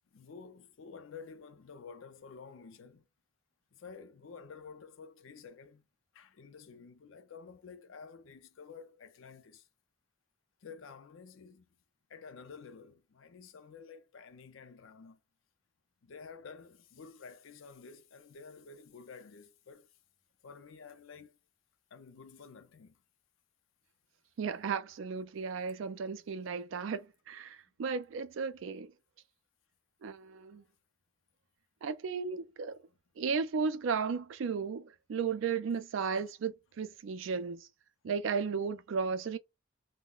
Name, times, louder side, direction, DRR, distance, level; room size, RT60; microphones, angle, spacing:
voice 1, 0.1-3.1 3.7-5.9 6.1-9.7 10.6-11.7 12.1-15.2 16.0-19.9 20.4-21.4 21.9-23.0, left 5 dB, 80° left, 0.5 m, -51 dB
voice 2, 24.4-28.9 30.0-30.6 31.8-32.8 33.2-37.7 38.0-39.4, right 5 dB, 75° right, 0.4 m, -35 dB
2.4 x 2.1 x 3.6 m
head